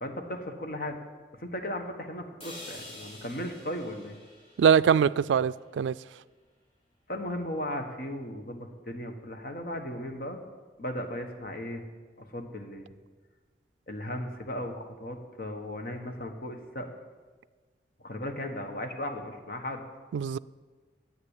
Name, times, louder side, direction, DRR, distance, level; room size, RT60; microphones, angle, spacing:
voice 1, 0.0-1.0 1.4-4.2 7.1-10.4 10.8-11.8 12.2-12.9 13.9-16.9 18.0-19.8, left 1 dB, 55° left, 1.4 m, -36 dB
sound 1, 2.4-6.4, left 1 dB, 30° left, 3.2 m, -49 dB
voice 2, 4.6-5.9 20.1-20.4, right 7 dB, 85° right, 0.3 m, -22 dB
10.0 x 8.7 x 8.3 m
head